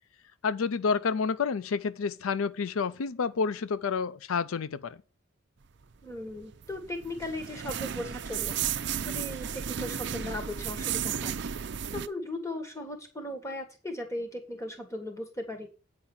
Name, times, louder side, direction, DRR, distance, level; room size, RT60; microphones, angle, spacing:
voice 1, 0.4-5.0, left 5 dB, 85° left, 0.5 m, -29 dB
voice 2, 6.0-8.6 9.0-11.4 11.9-15.7, left 1 dB, 15° left, 1.6 m, -37 dB
sound 1, 6.1-12.1, right 8 dB, 55° right, 0.5 m, -34 dB
8.8 x 4.8 x 7.2 m
head